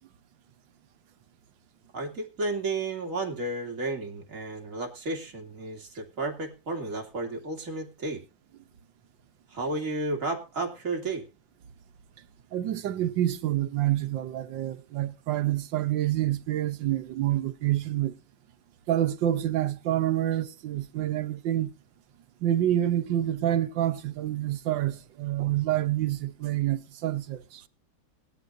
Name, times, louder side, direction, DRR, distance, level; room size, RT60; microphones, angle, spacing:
voice 1, 1.9-8.2 9.5-11.2, right 2 dB, 45° right, 3.0 m, -32 dB
voice 2, 12.5-18.1 18.9-21.7 22.4-27.6, right 12 dB, 85° right, 1.7 m, -27 dB
19.5 x 12.5 x 2.6 m
omnidirectional pair, 2.0 m